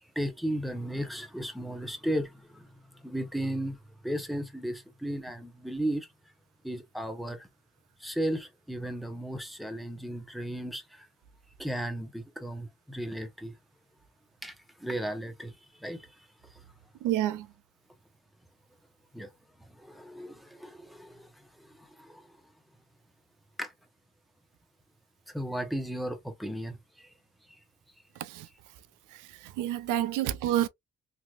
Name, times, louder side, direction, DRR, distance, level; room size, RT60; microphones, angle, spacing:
voice 1, 0.1-6.1 6.6-7.5 8.0-11.1 11.6-13.6 14.4-16.6 19.1-19.3 19.6-22.4 23.6-23.7 25.3-27.1 27.5-27.6, right 1 dB, ahead, 1.0 m, -35 dB
voice 2, 17.0-17.5 28.2-28.5 29.6-30.7, right 12 dB, 90° right, 0.5 m, -28 dB
3.3 x 2.8 x 2.4 m
cardioid pair, 90°, 30 cm